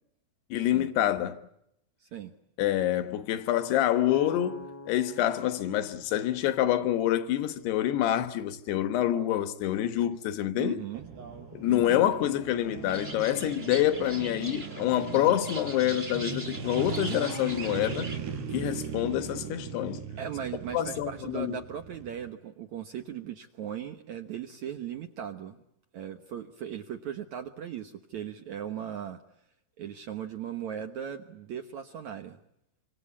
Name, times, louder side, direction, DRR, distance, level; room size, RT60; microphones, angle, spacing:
voice 1, 0.5-1.4 2.6-10.8 11.5-18.1 18.5-20.0 20.7-21.6, left 12 dB, 80° left, 3.3 m, -27 dB
voice 2, 2.0-2.3 10.6-11.1 11.7-12.0 20.2-25.6 25.9-29.2 29.8-32.4, right 9 dB, 65° right, 1.9 m, -38 dB
sound 1, 4.1-7.9, left 3 dB, 45° left, 1.7 m, -46 dB
sound 2, 10.9-22.3, right 7 dB, 85° right, 5.5 m, -39 dB
sound 3, 12.9-18.2, right 2 dB, 20° right, 1.9 m, -42 dB
26.5 x 25.5 x 8.4 m
omnidirectional pair, 4.8 m